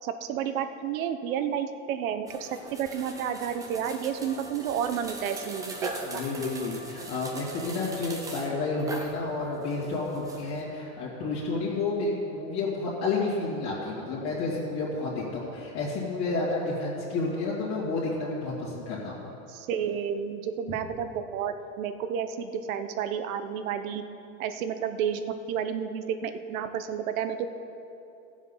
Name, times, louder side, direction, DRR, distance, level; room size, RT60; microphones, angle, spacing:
voice 1, 0.0-6.2 19.5-24.0 24.4-25.2 25.5-27.5, right 8 dB, 85° right, 9 dB, 1.0 m, -31 dB
sound 1, 2.3-10.6, right 2 dB, 10° right, 0.6 m, -40 dB
voice 2, 6.0-19.2, left 3 dB, 40° left, -7 dB, 2.3 m, -30 dB
15.5 x 7.3 x 5.6 m, 2.8 s
supercardioid pair, 165°, 40 cm